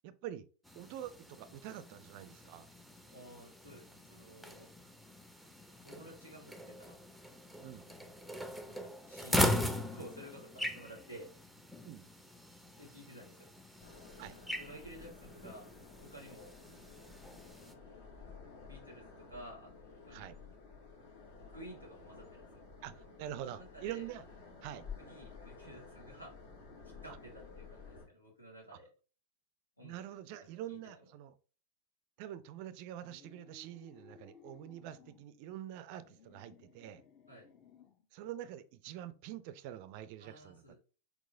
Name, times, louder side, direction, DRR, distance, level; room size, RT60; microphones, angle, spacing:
voice 1, 0.0-0.5 0.7-2.7 7.6-7.9 10.6-10.8 11.8-12.1 14.2-14.4 20.1-20.3 22.8-24.2 24.6-24.9 28.7-28.8 29.8-31.3 32.2-37.0 38.1-40.6, right 11 dB, 45° right, 0.4 m, -45 dB
sound 1, 0.6-17.7, equal, ahead, 0.6 m, -40 dB
voice 2, 3.1-4.7 5.8-7.0 7.9-11.3 12.8-13.5 14.6-15.7 16.0-17.1 17.6-17.9 18.7-20.5 21.5-22.6 23.3-24.1 25.0-26.3 26.8-28.9 29.8-30.0 30.7-30.8 37.3-37.5 40.2-40.8, right 1 dB, 85° left, 2.0 m, -53 dB
sound 2, 13.8-28.1, left 5 dB, 60° left, 1.7 m, -53 dB
sound 3, 33.0-35.3 35.9-38.1, left 6 dB, 30° left, 0.8 m, -60 dB
4.6 x 4.0 x 2.6 m
figure-of-eight pair, 90°, 0 cm